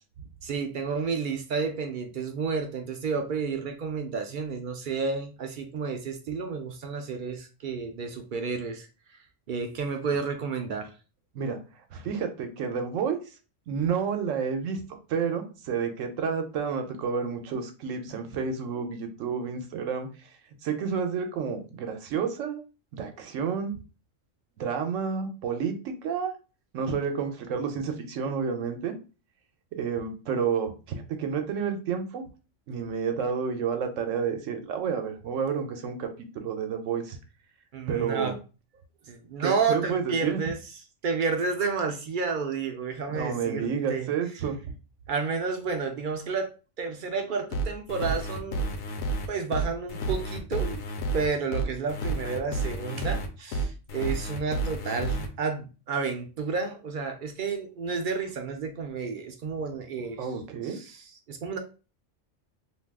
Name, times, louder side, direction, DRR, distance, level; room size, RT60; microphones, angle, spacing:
voice 1, 0.4-8.9 9.5-10.9 37.7-38.4 39.1-40.6 41.0-44.1 45.1-46.5 46.8-49.0 49.3-50.8 51.1-60.2 60.6-61.6, right 5 dB, 60° right, 5 dB, 0.5 m, -31 dB
voice 2, 11.9-13.2 13.7-14.8 15.1-20.1 20.6-22.6 22.9-23.7 24.6-26.3 26.7-28.9 29.7-32.2 32.7-36.1 36.4-37.2 37.9-38.4 39.4-40.4 43.1-44.6 60.2-60.8, right 6 dB, 80° right, 6 dB, 1.0 m, -30 dB
sound 1, 47.5-55.3, right 2 dB, 70° left, 0.9 m, -30 dB
2.6 x 2.3 x 3.4 m, 0.33 s
omnidirectional pair, 1.3 m